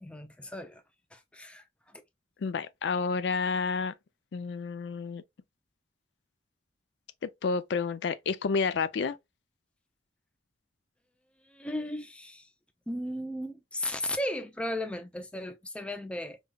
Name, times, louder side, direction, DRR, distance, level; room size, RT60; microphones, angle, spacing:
voice 1, 0.0-0.8 1.1-1.6 11.5-12.5 12.9-16.4, left 1 dB, 5° left, 0.4 m, -35 dB
voice 2, 2.4-3.9 4.3-5.2 7.4-9.2, left 5 dB, 75° left, 0.4 m, -30 dB
5.2 x 2.3 x 2.2 m
head